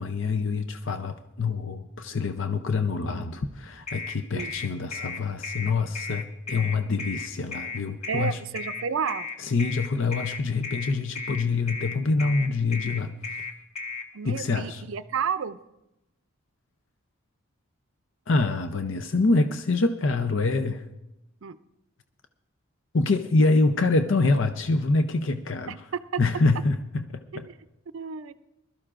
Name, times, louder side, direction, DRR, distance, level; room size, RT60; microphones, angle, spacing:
voice 1, 0.0-8.4 9.4-13.1 14.2-14.8 18.3-20.8 22.9-25.8 26.2-27.5, left 3 dB, 60° left, 8 dB, 0.6 m, -25 dB
sound 1, 3.9-14.1, left 4 dB, 30° left, 1.1 m, -35 dB
voice 2, 8.1-9.3 14.1-15.6 21.4-21.6 25.7-25.8 26.1-26.2 27.3-27.5 27.9-28.3, right 7 dB, 70° right, 14 dB, 0.5 m, -31 dB
21.0 x 13.0 x 2.5 m, 0.89 s
head